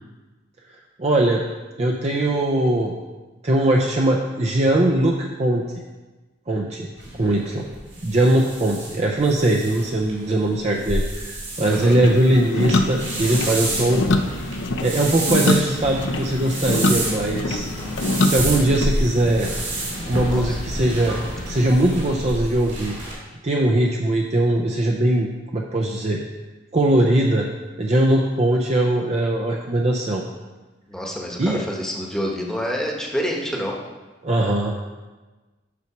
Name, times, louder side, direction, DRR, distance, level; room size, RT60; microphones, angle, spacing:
voice 1, 1.0-1.4 1.8-2.9 3.4-5.6 6.5-6.9 7.2-7.7 8.0-14.0 14.8-17.7 18.2-19.5 20.1-21.2 21.5-23.0 23.4-26.2 26.7-27.5 27.8-30.2 31.4-31.6 34.2-34.9, right 1 dB, 35° right, 0 dB, 0.6 m, -20 dB
sound 1, 7.0-23.1, right 1 dB, 75° right, 2.6 m, -30 dB
sound 2, 11.6-22.2, left 2 dB, 75° left, 0.6 m, -26 dB
voice 2, 20.3-20.6 30.9-31.4 31.7-33.8, equal, 5° left, -1 dB, 1.1 m, -27 dB
8.3 x 4.6 x 5.9 m, 1.2 s
head